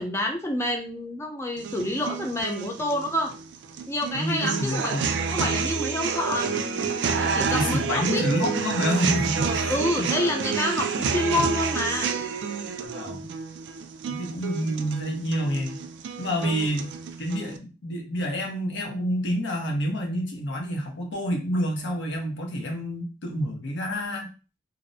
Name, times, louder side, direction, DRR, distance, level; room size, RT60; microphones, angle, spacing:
voice 1, 0.0-3.3 3.9-5.0 5.3-8.2 9.7-12.1 16.4-16.6, left 1 dB, 15° left, 2 dB, 0.4 m, -28 dB
sound 1, 1.6-17.6, right 5 dB, 70° right, 0.3 m, -29 dB
voice 2, 4.1-5.1 7.5-10.1 12.8-13.3 14.1-15.8 16.2-16.9 17.2-24.3, equal, 80° left, 1 dB, 0.7 m, -28 dB
2.5 x 2.0 x 2.6 m, 0.33 s
head